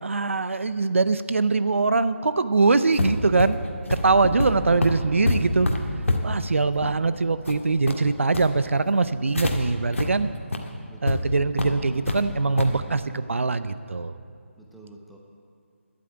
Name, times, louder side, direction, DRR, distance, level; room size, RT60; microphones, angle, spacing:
voice 1, 0.0-3.6 3.9-5.7 6.2-10.3 11.0-14.1, right 3 dB, 70° right, 13 dB, 0.6 m, -22 dB
sound 1, 2.9-9.5 9.9-10.1 10.4-10.6 11.1-11.2 11.6-12.2 12.6-12.8, left 2 dB, 75° left, 1.7 m, -27 dB
voice 2, 10.9-11.3 14.6-15.2, right 2 dB, ahead, -2 dB, 0.8 m, -49 dB
11.5 x 8.4 x 8.7 m, 2.3 s
figure-of-eight pair, 155°, 7 cm